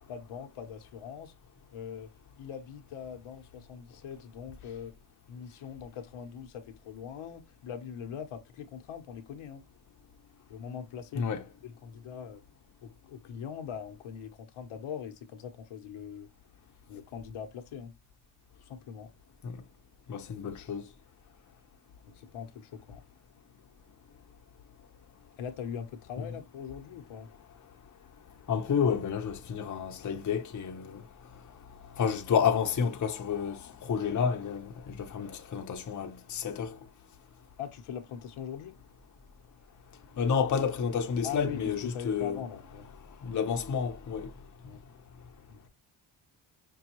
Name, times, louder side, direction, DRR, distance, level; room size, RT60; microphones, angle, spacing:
voice 1, 0.1-1.3 1.7-4.9 5.3-9.6 10.5-11.3 11.6-12.4 12.8-16.3 16.9-18.0 18.6-19.1 22.0-23.0 25.4-27.3 37.6-38.7 41.2-42.9 44.6-44.8 45.5-45.7, left 8 dB, 75° left, 0.9 m, -42 dB
voice 2, 20.1-20.9 26.2-26.3 28.5-31.5 31.8-36.8 40.1-42.4 43.1-44.3, left 7 dB, 35° left, 0.7 m, -30 dB
5.4 x 2.3 x 2.9 m
cardioid pair, 100°, 50 cm